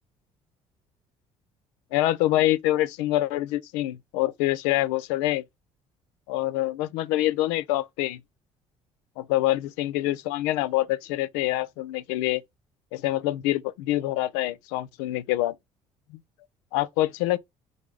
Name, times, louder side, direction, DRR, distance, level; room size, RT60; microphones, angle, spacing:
voice 1, 1.9-5.4 6.3-8.2 9.2-12.4 12.9-15.5 16.7-17.4, left 15 dB, 75° left, 0.4 m, -25 dB
3.8 x 3.0 x 3.5 m
hypercardioid pair, 60°, 16 cm